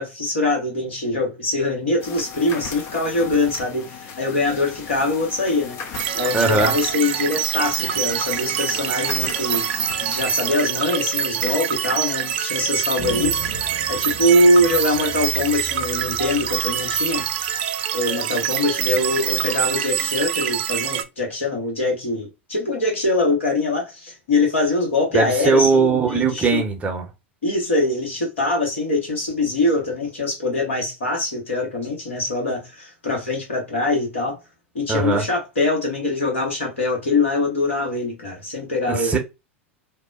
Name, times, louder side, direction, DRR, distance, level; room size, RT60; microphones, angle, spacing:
voice 1, 0.0-5.8 6.2-9.7 10.0-13.4 13.9-17.3 17.9-26.6 27.4-34.4 34.7-39.2, left 2 dB, 75° left, 1.4 m, -23 dB
sound 1, 2.0-10.6, left 6 dB, 40° left, 0.6 m, -37 dB
sound 2, 5.9-21.0, right 9 dB, 60° right, 0.3 m, -25 dB
voice 2, 6.3-6.7 25.1-27.0 34.9-35.2 38.9-39.2, right 4 dB, 20° right, 0.8 m, -19 dB
sound 3, 13.0-17.5, right 1 dB, 10° left, 0.9 m, -37 dB
2.7 x 2.0 x 2.4 m
figure-of-eight pair, 90°, 7 cm